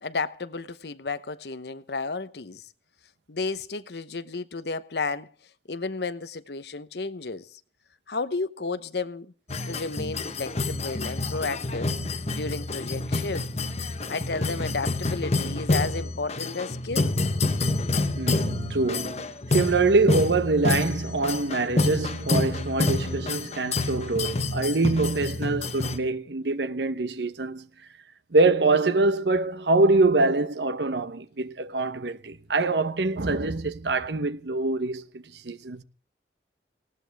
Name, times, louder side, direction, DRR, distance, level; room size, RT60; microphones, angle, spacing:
voice 1, 0.0-2.6 3.3-5.3 5.7-7.5 8.1-9.3 9.7-11.9 12.3-13.5 14.1-17.1, left 3 dB, 70° left, 0.9 m, -32 dB
sound 1, 9.5-26.0, left 2 dB, 35° left, 1.0 m, -28 dB
voice 2, 18.2-27.7 28.3-35.8, right 3 dB, 80° right, 0.9 m, -24 dB
19.0 x 17.0 x 3.5 m
head